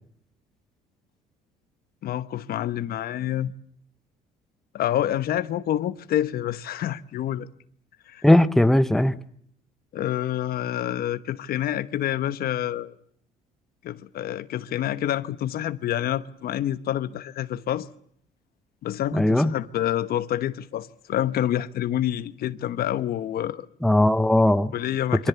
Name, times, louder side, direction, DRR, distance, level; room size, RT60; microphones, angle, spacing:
voice 1, 2.0-3.5 4.7-7.5 8.1-8.2 9.9-12.9 13.8-17.9 18.8-23.7 24.7-25.3, left 11 dB, 65° left, 1.2 m, -27 dB
voice 2, 8.2-9.2 19.1-19.5 23.8-24.7, left 1 dB, ahead, 1.0 m, -18 dB
27.0 x 23.5 x 7.0 m
cardioid pair, 110°, 17 cm